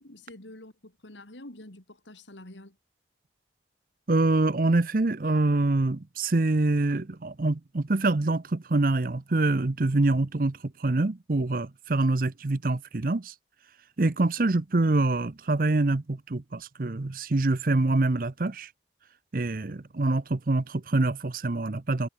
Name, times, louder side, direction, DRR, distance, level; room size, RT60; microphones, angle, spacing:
voice 1, 0.0-2.8, left 1 dB, 85° left, 3.2 m, -47 dB
voice 2, 4.1-13.3 14.0-18.7 19.3-22.1, right 2 dB, 50° right, 0.7 m, -25 dB
head